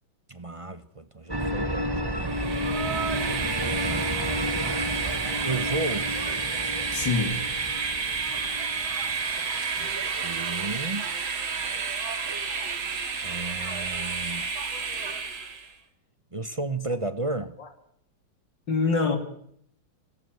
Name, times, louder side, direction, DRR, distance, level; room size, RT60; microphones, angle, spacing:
voice 1, 0.3-2.2 3.5-5.0 5.4-6.2 9.8-9.9 10.2-11.1 13.2-14.5 16.3-17.5, right 2 dB, 35° right, 0.5 m, -33 dB
sound 1, 1.3-10.2, equal, 15° right, 1.1 m, -32 dB
Train, 2.2-15.7, right 5 dB, 80° right, 3.0 m, -30 dB
voice 2, 6.9-7.4 17.6-17.7 18.7-19.2, left 4 dB, 60° left, 3.6 m, -25 dB
28.0 x 14.5 x 9.3 m
omnidirectional pair, 2.2 m